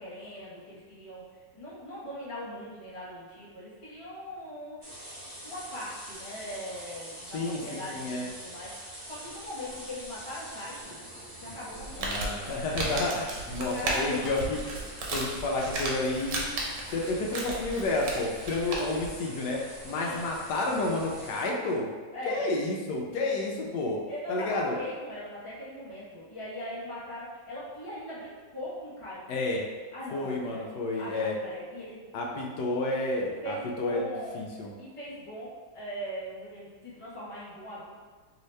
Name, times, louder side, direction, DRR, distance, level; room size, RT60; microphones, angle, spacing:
voice 1, 0.0-5.0 5.4-11.0 11.4-12.2 13.5-14.7 19.9-20.2 22.1-22.4 24.1-29.4 29.9-32.4 33.4-34.4 34.8-37.9, equal, 40° left, -8 dB, 0.4 m, -40 dB
sound 1, 4.8-21.4, right 1 dB, 35° right, 0.9 m, -45 dB
voice 2, 7.3-8.3 12.0-14.6 15.1-16.5 16.9-21.9 22.3-24.0 24.3-24.8 29.3-29.6 30.1-31.4 32.1-34.7, left 2 dB, 85° left, -1 dB, 1.2 m, -30 dB
Crumpling crinkling, 11.7-19.1, right 2 dB, 90° right, 1.3 m, -35 dB
3.1 x 2.8 x 3.2 m, 1.4 s
omnidirectional pair, 1.8 m